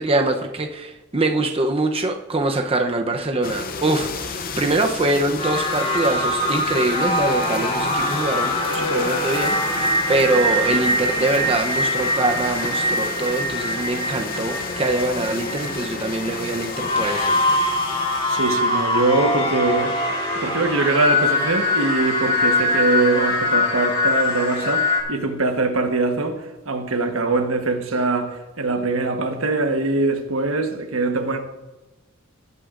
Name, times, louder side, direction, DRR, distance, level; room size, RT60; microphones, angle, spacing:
voice 1, 0.0-17.3, right 2 dB, 30° right, 0.7 m, -23 dB
sound 1, 3.4-19.0, left 4 dB, 45° left, 0.6 m, -32 dB
sound 2, 5.4-25.0, left 1 dB, 30° left, 2.2 m, -23 dB
voice 2, 18.3-20.0 20.4-31.4, right 3 dB, 85° right, 1.2 m, -22 dB
18.5 x 8.3 x 2.5 m
head